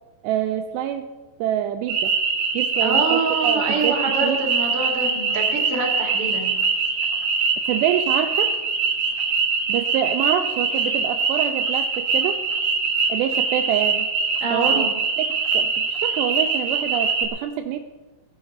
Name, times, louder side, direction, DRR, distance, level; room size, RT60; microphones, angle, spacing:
voice 1, 0.2-1.1 1.4-2.1 2.5-4.4 7.7-8.5 9.7-12.4 13.1-14.1 14.5-14.9 15.2-17.8, right 10 dB, 85° right, 7 dB, 2.5 m, -26 dB
sound 1, 1.9-17.3, right 5 dB, 55° right, 2.5 m, -23 dB
voice 2, 2.8-6.5 14.4-14.9, right 3 dB, 35° right, 1 dB, 2.9 m, -26 dB
16.0 x 10.0 x 5.4 m, 1.2 s
omnidirectional pair, 5.4 m